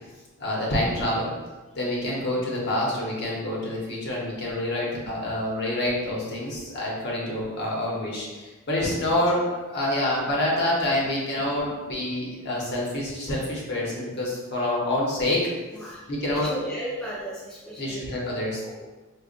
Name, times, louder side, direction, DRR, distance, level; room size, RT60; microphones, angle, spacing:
voice 1, 0.4-1.3 1.7-15.5 16.1-16.5 17.8-18.6, left 1 dB, 50° left, -4 dB, 0.9 m, -27 dB
voice 2, 15.7-18.1 18.6-18.8, right 1 dB, 5° left, -8 dB, 0.5 m, -36 dB
5.0 x 2.3 x 2.5 m, 1.2 s
head